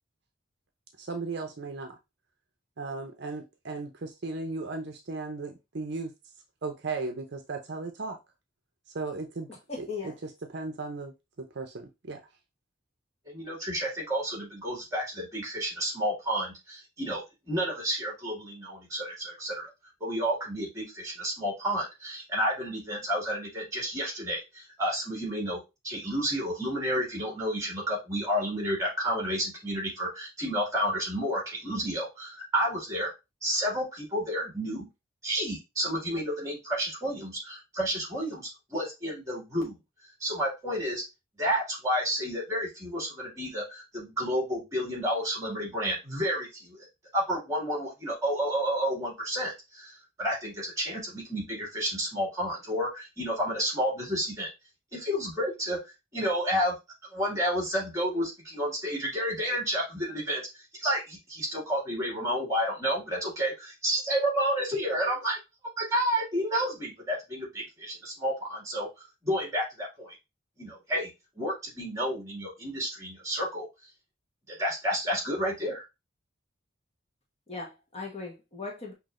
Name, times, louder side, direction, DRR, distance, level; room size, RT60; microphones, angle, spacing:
voice 1, 1.0-2.0 2.8-6.1 6.6-8.2 8.9-9.5 9.8-10.1 10.5-12.2, right 3 dB, 55° right, 0.6 m, -36 dB
voice 2, 9.7-10.1 77.5-78.9, left 4 dB, 30° left, 1.1 m, -38 dB
voice 3, 13.3-19.7 20.0-33.1 33.4-34.9 35.2-41.0 41.4-46.8 47.1-54.5 54.9-56.8 57.1-60.4 60.8-65.4 65.8-70.2 70.6-71.1 71.4-73.7 74.6-75.8, equal, 15° right, 2.1 m, -31 dB
5.9 x 2.8 x 2.5 m
head